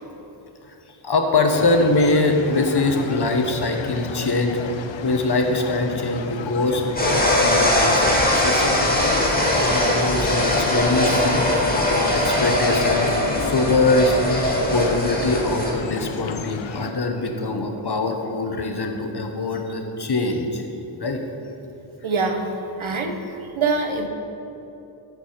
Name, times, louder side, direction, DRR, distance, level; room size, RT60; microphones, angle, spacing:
voice 1, 1.0-4.8 5.0-8.0 8.3-9.3 9.6-11.4 11.9-13.1 13.4-14.4 14.7-20.6 21.0-21.2, left 2 dB, 55° left, 4 dB, 1.0 m, -23 dB
sound 1, 1.5-16.9, left 7 dB, 70° left, 0.5 m, -33 dB
sound 2, 7.0-15.7, left 1 dB, 20° left, 1.9 m, -21 dB
voice 2, 22.0-23.2 23.5-24.1, right 3 dB, 75° right, 5 dB, 1.0 m, -24 dB
12.5 x 4.8 x 5.7 m, 2.9 s
wide cardioid pair, 60°, 48 cm